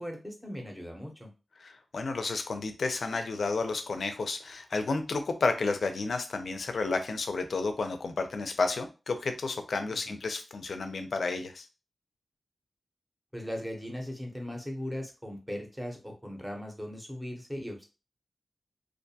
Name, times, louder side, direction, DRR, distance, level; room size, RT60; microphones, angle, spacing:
voice 1, 0.0-1.3 10.1-10.2 13.3-17.8, equal, 5° right, 1 dB, 0.6 m, -38 dB
voice 2, 1.6-11.7, left 3 dB, 65° left, 7 dB, 0.4 m, -31 dB
2.4 x 2.2 x 2.6 m, 0.31 s
wide cardioid pair, 115°, 0 cm